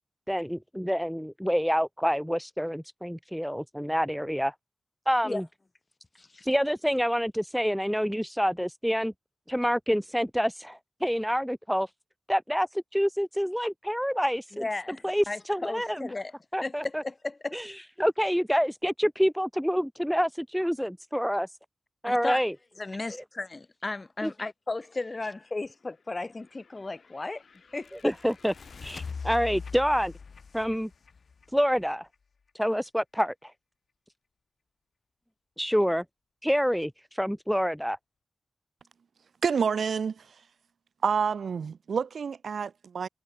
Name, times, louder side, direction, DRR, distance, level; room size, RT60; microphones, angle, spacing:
voice 1, 0.3-4.5 5.1-5.5 6.4-9.1 9.5-11.9 12.3-14.7 15.0-16.1 16.5-17.0 17.5-21.5 22.0-22.5 23.1-23.2 24.2-24.3 28.0-28.5 28.8-30.1 30.5-30.9 31.5-32.1 32.5-33.5 35.6-36.0 36.4-38.0, equal, ahead, 0.3 m, -27 dB
voice 2, 14.6-16.3 16.6-17.6 22.0-22.4 22.8-27.4 27.7-27.9, left 3 dB, 35° left, 4.1 m, -35 dB
sound 1, 26.4-32.2, left 5 dB, 70° left, 2.2 m, -43 dB
voice 3, 39.4-40.3 41.0-43.1, right 6 dB, 80° right, 0.5 m, -28 dB
cardioid pair, 60°, 0 cm